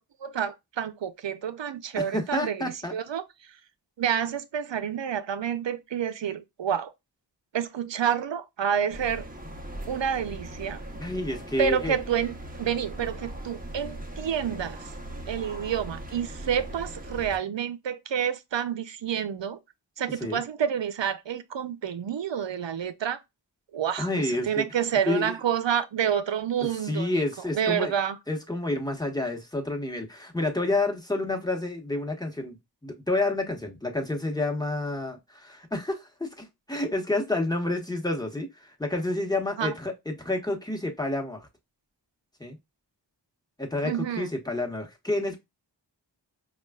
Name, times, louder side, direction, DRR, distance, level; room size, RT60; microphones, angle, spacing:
voice 1, 0.2-3.2 4.0-6.9 7.5-9.3 9.9-10.8 11.6-14.8 15.3-19.6 20.0-23.2 23.7-27.2 27.5-28.2 39.6-39.7 43.8-44.3, right 8 dB, 80° right, 0.6 m, -29 dB
voice 2, 1.9-2.9 11.0-11.9 20.2-20.4 24.0-24.7 25.1-25.4 26.8-27.9 28.3-32.6 32.8-41.5 42.4-42.6 43.6-45.4, left 2 dB, 10° left, 1.2 m, -29 dB
sound 1, 8.9-17.4, right 1 dB, 20° right, 0.9 m, -39 dB
5.2 x 2.4 x 2.3 m
wide cardioid pair, 45°, 44 cm